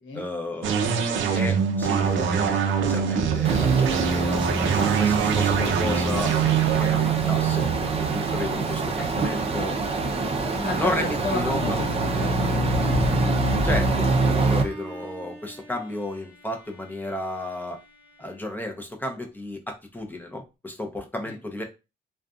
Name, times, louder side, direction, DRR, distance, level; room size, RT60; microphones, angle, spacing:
voice 1, 0.1-6.4 6.8-9.8 10.8-11.8 13.6-17.8 18.2-21.6, left 1 dB, 10° left, 3 dB, 0.6 m, -33 dB
sound 1, 0.6-10.1, right 7 dB, 75° right, 0.5 m, -24 dB
sound 2, 3.4-14.6, right 2 dB, 30° right, 0.6 m, -25 dB
voice 2, 10.5-12.9 21.2-21.4, left 2 dB, 70° left, 2 dB, 1.0 m, -33 dB
Bowed string instrument, 14.1-19.1, right 3 dB, 10° right, 1.1 m, -47 dB
2.5 x 2.3 x 2.4 m, 0.28 s
cardioid pair, 90°, 20 cm